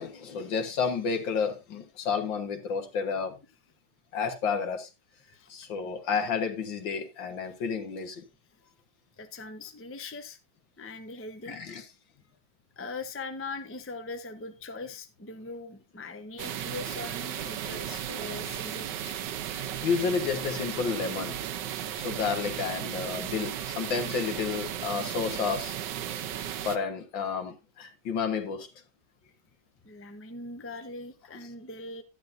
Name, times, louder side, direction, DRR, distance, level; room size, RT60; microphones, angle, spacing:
voice 1, 0.0-3.4 4.1-4.9 5.5-8.2 11.4-11.8 19.5-21.4 21.9-25.8 26.6-28.7, left 5 dB, 70° left, 2.1 m, -31 dB
voice 2, 9.2-10.4 10.8-11.6 12.8-19.2 29.8-32.0, left 3 dB, 15° left, 0.4 m, -41 dB
sound 1, 16.4-26.8, right 10 dB, 70° right, 1.3 m, -35 dB
11.5 x 10.5 x 2.6 m
omnidirectional pair, 2.1 m